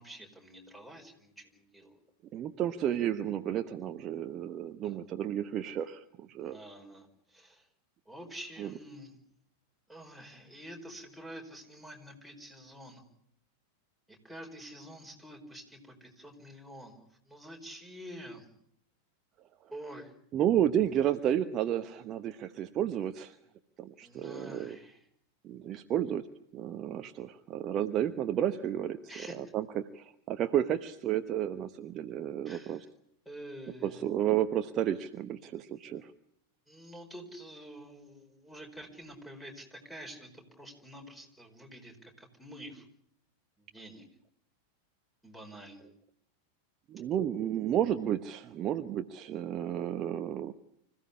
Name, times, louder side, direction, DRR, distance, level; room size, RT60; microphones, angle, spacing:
voice 1, 0.0-2.0 4.8-5.0 6.4-7.7 8.1-9.2 9.9-13.0 14.1-18.5 19.7-20.1 24.0-25.0 29.1-29.4 32.4-32.9 33.2-34.1 36.7-42.8 43.6-44.0 45.2-45.9, equal, ahead, 3 dB, 4.9 m, -48 dB
voice 2, 2.3-6.6 8.6-8.7 20.3-23.4 23.8-24.8 25.4-26.2 26.5-29.0 29.3-32.8 33.8-36.1 46.9-50.5, right 10 dB, 30° right, 9 dB, 0.9 m, -32 dB
25.5 x 15.5 x 9.8 m, 0.73 s
figure-of-eight pair, 90°, 0 cm